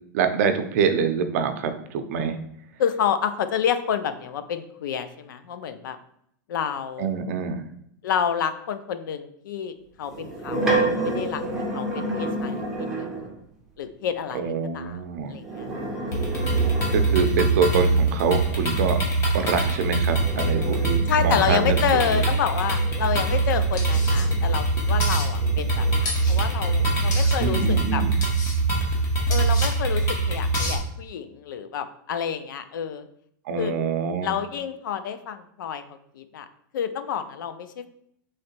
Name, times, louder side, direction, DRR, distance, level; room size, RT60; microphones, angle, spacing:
voice 1, 0.1-2.4 7.0-7.6 14.3-15.4 16.9-19.0 19.3-21.8 22.1-22.2 27.4-28.2 33.5-34.4, right 6 dB, 50° right, 8 dB, 0.5 m, -25 dB
voice 2, 2.8-6.0 6.5-7.1 8.0-10.7 11.0-11.4 11.7-13.3 13.8-15.0 15.3-15.7 21.1-28.0 29.3-33.1 33.6-33.7 34.2-36.5 36.7-37.9, left 8 dB, 90° left, 11 dB, 0.5 m, -29 dB
sound 1, 10.0-13.4 15.3-17.7 19.6-24.8 25.3-27.1, right 2 dB, 5° right, 0.7 m, -31 dB
sound 2, 16.1-30.8, right 3 dB, 25° left, 1.0 m, -23 dB
sound 3, 23.8-24.2 25.0-25.3 26.0-26.4 27.1-27.4 28.2-28.6 29.3-29.7 30.5-30.8, left 3 dB, 70° left, 1.5 m, -32 dB
3.7 x 3.2 x 4.4 m, 0.70 s
supercardioid pair, 175°, 10 cm